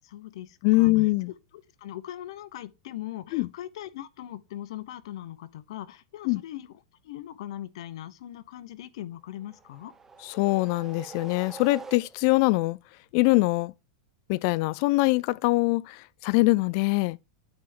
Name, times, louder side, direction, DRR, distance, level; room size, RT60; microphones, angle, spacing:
voice 1, 0.0-0.9 1.8-9.9, left 13 dB, 70° left, 0.8 m, -40 dB
voice 2, 0.6-1.3 3.3-3.5 6.3-6.4 10.3-12.8 13.1-13.7 14.3-17.2, left 22 dB, 50° left, 0.3 m, -23 dB
sound 1, 9.4-12.5, right 5 dB, 15° right, 0.8 m, -45 dB
8.8 x 3.4 x 5.3 m
supercardioid pair, 130°, 3 cm